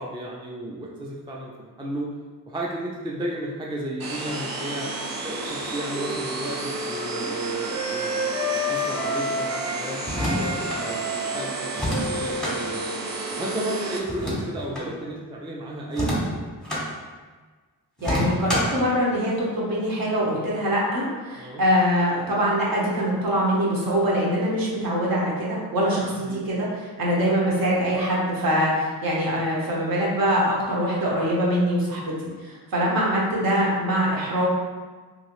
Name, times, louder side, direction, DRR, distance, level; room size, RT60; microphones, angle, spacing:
voice 1, 0.0-2.1 2.5-4.9 5.2-12.9 13.4-16.2 21.4-21.6 26.2-26.5, right 1 dB, 15° right, -3 dB, 0.3 m, -33 dB
sound 1, 4.0-14.0, right 2 dB, 85° right, 0.6 m, -32 dB
Wind instrument woodwind instrument, 5.3-9.8 10.1-14.6, equal, 45° right, 0.8 m, -32 dB
sound 2, 10.0-10.8 11.7-12.6 14.0-14.9 15.9-16.9 18.0-18.8, equal, ahead, 0.8 m, -27 dB
voice 2, 18.0-34.5, equal, 70° right, -5 dB, 1.0 m, -23 dB
3.0 x 2.7 x 3.0 m, 1.4 s
wide cardioid pair, 105°, 36 cm